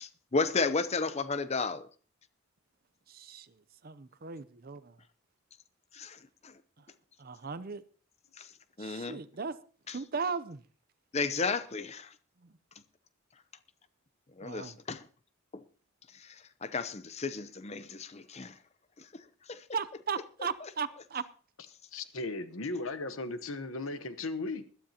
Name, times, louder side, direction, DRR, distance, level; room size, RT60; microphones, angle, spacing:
voice 1, 0.0-1.9 5.9-6.5 8.8-9.2 9.9-10.0 11.1-12.1 14.4-15.0 15.5-15.6 16.1-18.6 19.0-19.2 19.5-19.6 20.6-20.7, left 4 dB, 30° left, 0.7 m, -33 dB
voice 2, 3.1-3.5 3.8-4.8 7.2-7.8 8.8-9.5 9.9-10.6 14.4-14.8 19.7-21.2, right 5 dB, 45° right, 0.6 m, -37 dB
voice 3, 21.9-24.6, left 2 dB, 70° left, 1.0 m, -36 dB
20.5 x 12.5 x 2.9 m
head